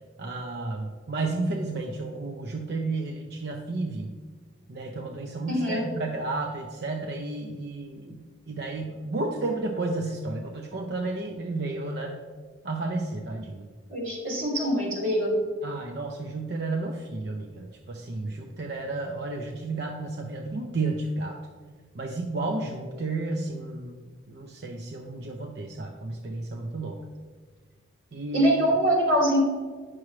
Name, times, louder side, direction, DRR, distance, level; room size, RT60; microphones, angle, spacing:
voice 1, 0.2-4.1 4.7-12.2 12.6-13.7 15.6-21.4 21.9-27.0 28.1-28.5, right 2 dB, 55° right, 2 dB, 0.5 m, -32 dB
voice 2, 5.5-5.8 13.9-15.3 28.3-29.4, equal, 80° right, -3 dB, 2.3 m, -23 dB
8.5 x 6.1 x 3.1 m, 1.5 s
head